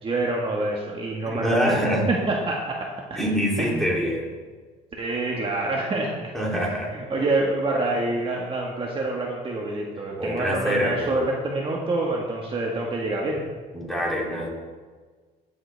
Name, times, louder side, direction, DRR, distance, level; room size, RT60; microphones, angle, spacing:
voice 1, 0.0-1.8 2.1-3.2 3.6-3.9 5.0-13.4, right 2 dB, 30° right, -2 dB, 1.6 m, -27 dB
voice 2, 1.3-2.1 3.1-4.3 6.3-6.9 10.2-11.3 13.7-14.5, equal, ahead, -3 dB, 3.1 m, -25 dB
14.5 x 7.9 x 3.4 m, 1.4 s
cardioid pair, 110°, 17 cm